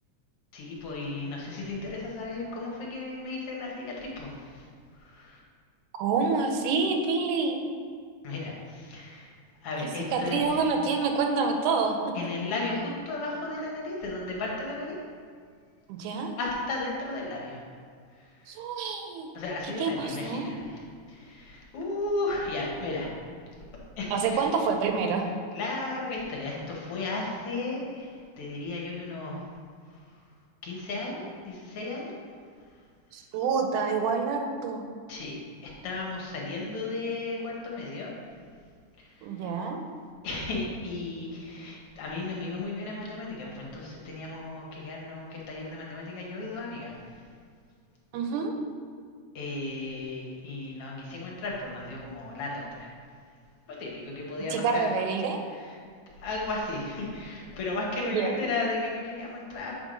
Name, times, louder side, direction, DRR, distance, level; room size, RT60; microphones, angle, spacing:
voice 1, 0.5-4.6 5.0-5.4 8.2-9.3 9.6-10.6 12.1-15.0 16.4-17.6 19.3-20.8 21.1-23.1 24.0-24.4 25.5-29.5 30.6-32.2 35.1-38.1 39.0-39.6 40.2-46.9 49.3-52.9 53.7-54.9 55.5-55.7 56.2-59.8, left 2 dB, 60° left, -3 dB, 1.6 m, -34 dB
voice 2, 6.0-7.6 10.1-12.0 15.9-16.3 18.5-19.3 19.8-20.6 24.1-25.3 33.1-34.8 39.2-39.8 48.1-48.5 54.5-55.4 58.0-58.4, right 4 dB, 80° right, 4 dB, 2.1 m, -27 dB
7.4 x 3.5 x 5.1 m, 2.1 s
omnidirectional pair, 3.6 m